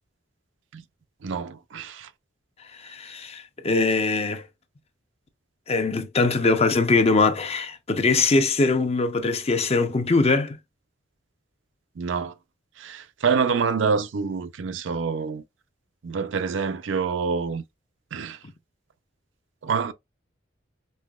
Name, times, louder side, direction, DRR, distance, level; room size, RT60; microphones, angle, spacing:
voice 1, 1.2-2.1 12.0-12.3 12.8-15.4 16.0-17.6 18.1-18.4 19.6-19.9, right 5 dB, 80° right, 0.5 m, -26 dB
voice 2, 2.8-4.4 5.7-10.6, left 3 dB, 35° left, 0.6 m, -22 dB
5.5 x 2.8 x 2.3 m
head